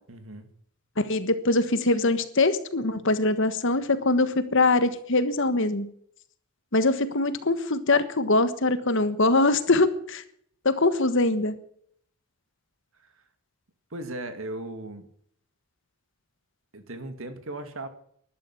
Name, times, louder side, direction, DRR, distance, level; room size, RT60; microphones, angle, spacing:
voice 1, 0.1-0.5 13.0-13.2 13.9-15.1 16.7-17.9, right 2 dB, 65° right, 9 dB, 2.2 m, -37 dB
voice 2, 1.0-5.9 6.7-10.2 10.6-11.5, left 2 dB, 60° left, 12 dB, 1.4 m, -23 dB
12.0 x 12.0 x 8.3 m, 0.65 s
head